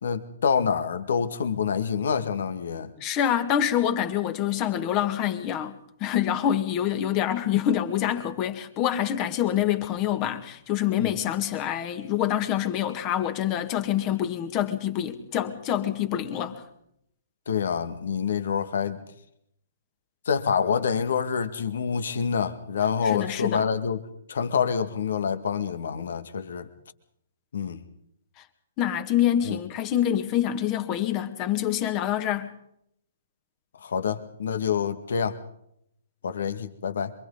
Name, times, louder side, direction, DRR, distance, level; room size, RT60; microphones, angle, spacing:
voice 1, 0.0-2.9 11.0-11.2 17.5-19.0 20.3-24.0 24.3-26.7 27.5-27.8 29.4-29.6 33.8-35.4 36.2-37.1, left 6 dB, 60° left, 1.9 m, -27 dB
voice 2, 3.0-5.8 6.0-16.6 23.0-23.7 28.8-32.5, left 10 dB, 30° left, 2.1 m, -26 dB
27.5 x 24.5 x 4.0 m
figure-of-eight pair, 120°, 0 cm